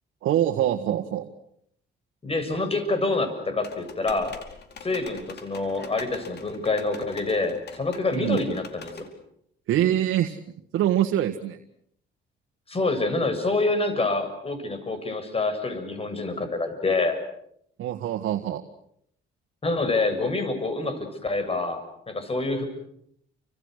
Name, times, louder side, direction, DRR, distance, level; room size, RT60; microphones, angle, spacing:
voice 1, 0.2-1.3 8.1-8.4 9.7-10.4 10.7-11.6 17.8-18.6, right 11 dB, 85° right, 5 dB, 1.6 m, -24 dB
voice 2, 2.2-4.4 4.8-9.1 12.7-17.2 19.6-22.6, left 3 dB, 30° left, 8 dB, 6.9 m, -27 dB
sound 1, 3.6-9.1, left 5 dB, 60° left, 4.8 m, -43 dB
30.0 x 26.0 x 6.6 m, 0.71 s
cardioid pair, 90°, 20 cm